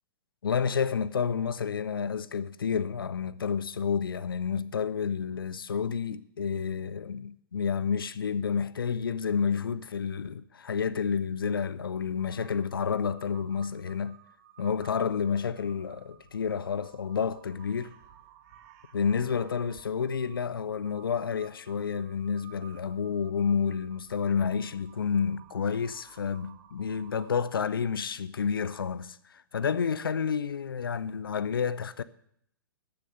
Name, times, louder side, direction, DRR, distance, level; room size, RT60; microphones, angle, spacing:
voice 1, 0.4-14.2 14.6-18.0 18.9-32.0, left 6 dB, 65° left, 0.6 m, -30 dB
Crow, 12.3-27.8, right 10 dB, 40° right, 1.2 m, -56 dB
14.0 x 6.9 x 6.6 m
figure-of-eight pair, 110°, 12 cm